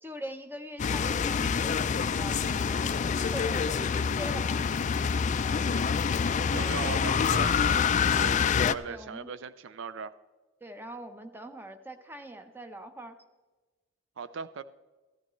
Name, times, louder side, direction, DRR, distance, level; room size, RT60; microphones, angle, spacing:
voice 1, 0.0-4.7 6.4-7.1 8.9-9.3 10.6-13.2, right 1 dB, 10° right, 7 dB, 0.8 m, -42 dB
sound 1, 0.8-8.7, left 6 dB, 35° left, 0.3 m, -26 dB
voice 2, 5.4-5.9 6.5-8.4 8.7-10.1 14.2-14.6, right 5 dB, 60° right, 15 dB, 0.4 m, -39 dB
15.0 x 11.5 x 3.1 m, 1.2 s
head